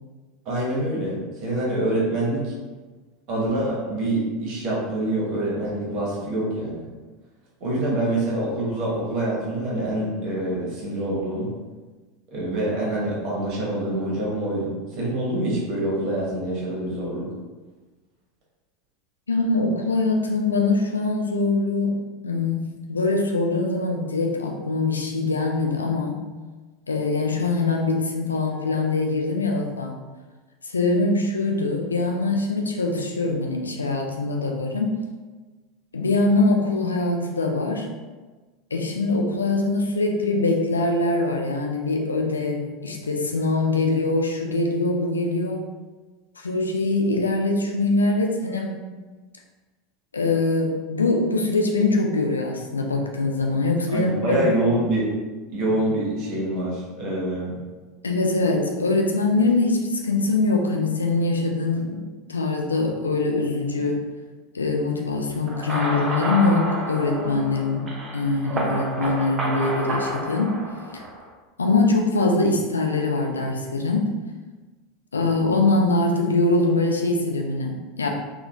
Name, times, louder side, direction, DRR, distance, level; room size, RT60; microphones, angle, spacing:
voice 1, 0.4-1.2 1.4-2.5 3.3-6.8 7.6-11.5 12.3-17.3 53.9-55.1 55.5-57.6, right 1 dB, 45° right, -5 dB, 1.2 m, -25 dB
voice 2, 19.3-22.0 22.2-26.3 26.9-30.0 30.6-35.0 35.9-37.9 38.7-45.7 46.4-48.7 50.1-54.4 58.0-64.1 64.5-67.9 68.1-70.5 70.9-71.0 71.6-74.1 75.1-78.1, left 3 dB, 80° left, 1 dB, 0.4 m, -23 dB
sound 1, 65.5-71.3, right 1 dB, 30° right, 0.6 m, -30 dB
3.7 x 2.2 x 2.4 m, 1.3 s
figure-of-eight pair, 80°, 0 cm